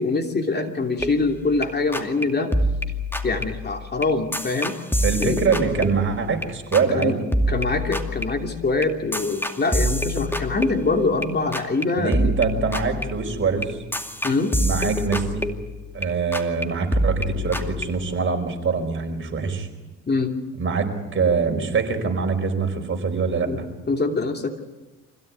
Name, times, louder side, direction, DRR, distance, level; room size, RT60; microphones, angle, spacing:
voice 1, 0.0-2.5 3.2-4.7 5.2-5.4 6.9-7.2 7.5-12.3 14.2-14.5 20.1-20.3 23.5-23.6 23.9-24.8, left 3 dB, 35° left, 4 dB, 2.9 m, -24 dB
sound 1, 1.0-1.7 1.9-2.2 2.5-6.5 6.7-7.0 7.3-11.3 11.5-11.8 12.1-16.1 16.3-16.6 16.9-17.8, equal, 5° left, 2.4 m, -26 dB
voice 2, 5.0-7.2 12.0-13.8 14.6-15.4 15.9-19.7 20.6-23.5, right 5 dB, 40° right, 4 dB, 4.9 m, -24 dB
25.5 x 16.5 x 9.5 m, 1.2 s
cardioid pair, 90°, 30 cm